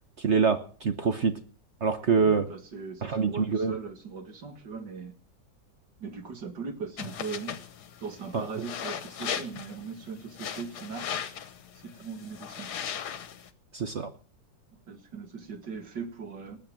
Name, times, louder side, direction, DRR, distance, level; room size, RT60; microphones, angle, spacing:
voice 1, 0.2-1.3 1.8-2.4 3.0-3.7 8.3-8.4 13.7-14.1, right 5 dB, 45° right, 9 dB, 1.0 m, -25 dB
voice 2, 2.2-5.1 6.0-7.6 8.0-11.2 11.7-12.7 14.9-16.6, right 5 dB, 70° right, 7 dB, 2.7 m, -39 dB
sound 1, 7.0-13.5, left 8 dB, 65° left, 1.6 m, -38 dB
19.5 x 7.8 x 7.5 m, 0.42 s
omnidirectional pair, 1.9 m